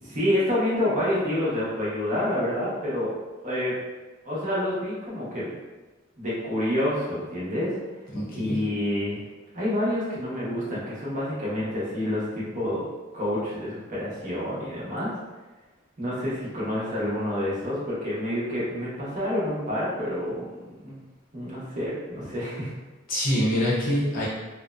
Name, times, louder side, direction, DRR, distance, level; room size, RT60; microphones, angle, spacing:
voice 1, 0.0-3.1 3.4-3.8 4.2-5.5 6.2-7.8 8.3-9.2 9.5-12.9 13.1-15.2 16.0-21.0 21.3-22.7, left 1 dB, 40° right, -8 dB, 0.8 m, -28 dB
voice 2, 8.1-8.6 23.1-24.3, equal, 45° left, -7 dB, 0.7 m, -25 dB
2.6 x 2.0 x 2.3 m, 1.2 s
head